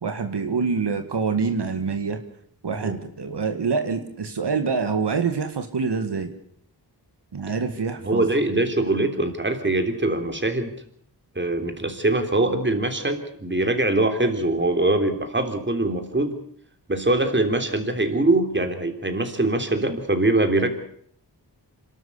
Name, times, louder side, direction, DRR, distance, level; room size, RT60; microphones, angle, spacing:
voice 1, 0.0-2.2 2.6-6.3 7.3-8.3, right 5 dB, 80° right, 6 dB, 2.0 m, -26 dB
voice 2, 8.0-10.7 11.4-16.4 16.9-20.7, right 2 dB, 30° right, 6 dB, 3.3 m, -23 dB
27.5 x 12.5 x 8.3 m, 0.65 s
wide cardioid pair, 70°, 40 cm